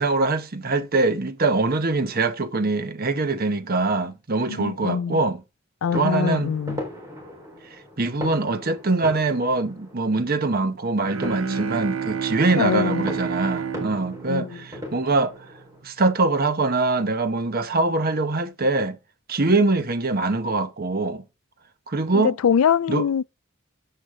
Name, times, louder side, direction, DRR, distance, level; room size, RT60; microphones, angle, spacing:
voice 1, 0.0-5.4 5.9-6.5 8.0-15.3 15.8-19.0 19.3-21.2 21.9-22.3 22.9-23.1, right 3 dB, 45° right, 0.9 m, -23 dB
voice 2, 4.5-5.2 5.8-6.8 12.5-13.1 14.3-14.6 22.1-23.2, left 7 dB, 80° left, 0.4 m, -23 dB
sound 1, 5.9-15.8, left 1 dB, 15° right, 4.0 m, -38 dB
Bowed string instrument, 11.0-15.3, right 6 dB, 70° right, 0.6 m, -30 dB
9.8 x 7.9 x 3.7 m
head